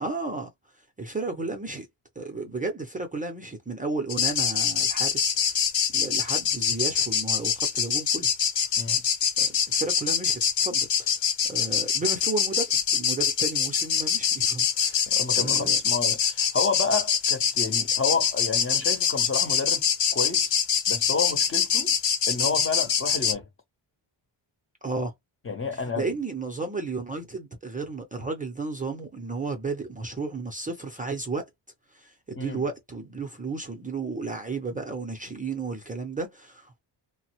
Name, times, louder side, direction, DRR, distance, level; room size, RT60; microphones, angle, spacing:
voice 1, 0.0-0.5 1.0-1.9 2.2-5.6 5.9-8.3 9.4-11.2 11.5-15.8 24.8-25.1 25.7-31.5 31.9-36.8, right 3 dB, 20° right, 0.4 m, -33 dB
sound 1, 4.1-23.3, left 7 dB, 80° left, 1.0 m, -24 dB
voice 2, 15.1-19.9 20.1-20.5 20.9-21.9 22.3-23.5 25.5-26.1 32.4-32.6, left 4 dB, 30° left, 0.6 m, -30 dB
3.3 x 2.0 x 2.8 m
wide cardioid pair, 180°, 45 cm